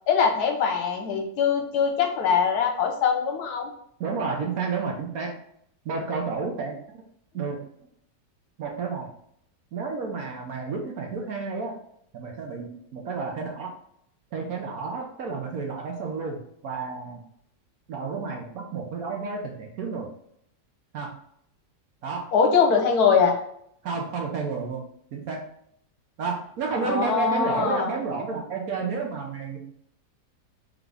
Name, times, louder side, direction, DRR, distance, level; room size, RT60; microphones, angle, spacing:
voice 1, 0.1-3.7 22.3-23.4 26.8-27.9, left 6 dB, 65° left, 3 dB, 1.1 m, -22 dB
voice 2, 4.0-5.4 5.8-7.0 7.3-7.6 8.6-9.1 9.7-11.7 12.1-13.7 14.3-17.2 17.9-20.1 20.9-21.2 22.0-22.3 23.8-25.5 26.2-29.7, right 4 dB, 65° right, 1 dB, 1.1 m, -31 dB
3.9 x 3.5 x 3.3 m, 0.69 s
omnidirectional pair, 1.9 m